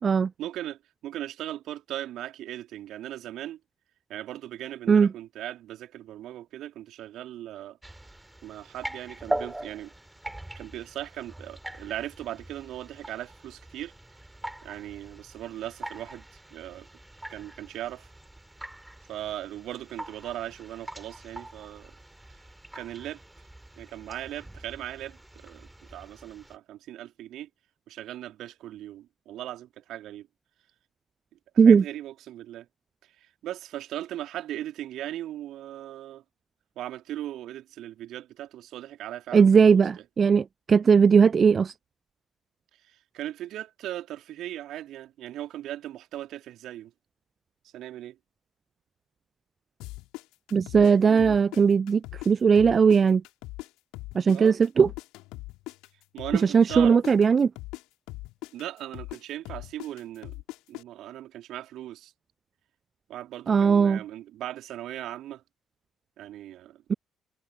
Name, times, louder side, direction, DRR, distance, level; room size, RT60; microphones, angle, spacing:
voice 1, 0.4-3.6 4.1-7.8 8.4-9.9 10.5-13.9 14.6-16.9 17.3-18.1 19.1-22.0 22.7-23.2 23.8-27.5 27.9-30.3 31.6-32.7 33.0-36.2 36.7-39.8 42.7-46.9 47.6-48.2 51.0-51.4 54.3-54.6 56.1-57.0 58.5-60.4 60.7-62.1 63.1-65.4 66.2-66.8, right 13 dB, 60° right, 2.9 m, -38 dB
sound 1, 7.8-26.6, right 1 dB, 10° right, 4.0 m, -42 dB
voice 2, 39.3-41.7 50.5-53.2 54.1-54.9 56.3-57.5 63.5-64.0, right 6 dB, 40° right, 0.4 m, -19 dB
sound 2, 49.8-52.3 52.6-56.4 56.7-60.8, left 20 dB, 65° left, 2.2 m, -40 dB
figure-of-eight pair, 45°, 0 cm